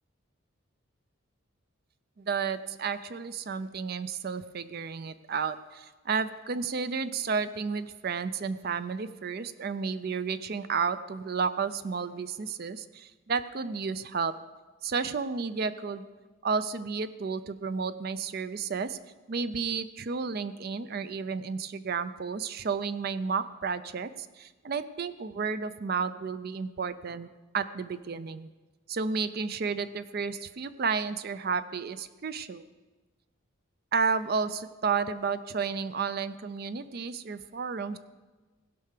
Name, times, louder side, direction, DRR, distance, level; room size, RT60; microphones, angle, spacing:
voice 1, 2.2-14.3 14.8-16.1 16.4-19.0 19.3-27.3 27.5-28.5 28.9-32.7 33.9-38.0, right 5 dB, 45° right, 13 dB, 0.4 m, -32 dB
16.0 x 5.6 x 6.6 m, 1.3 s
head